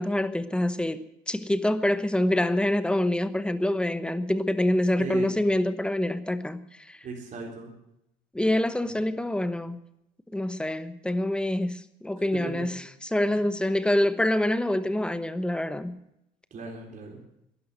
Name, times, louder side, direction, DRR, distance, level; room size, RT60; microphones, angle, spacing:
voice 1, 0.0-7.0 8.3-9.8 10.3-16.0, left 1 dB, 5° left, 1.0 m, -26 dB
voice 2, 5.0-5.3 7.0-7.7 12.3-12.7 13.3-13.4 16.5-17.2, right 3 dB, 50° right, 3.9 m, -37 dB
12.5 x 11.0 x 9.2 m
cardioid pair, 110°, 17 cm